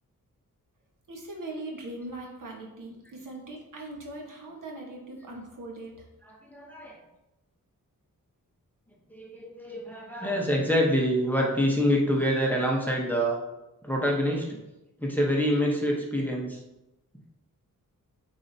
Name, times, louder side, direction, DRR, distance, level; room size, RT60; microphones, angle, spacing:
voice 1, 1.1-6.1, right 2 dB, 65° right, 0 dB, 1.4 m, -40 dB
voice 2, 6.5-7.0 9.1-13.4 13.8-14.6 15.0-16.6, equal, 5° left, -2 dB, 1.0 m, -26 dB
8.7 x 4.1 x 2.8 m, 0.95 s
wide cardioid pair, 100°, 34 cm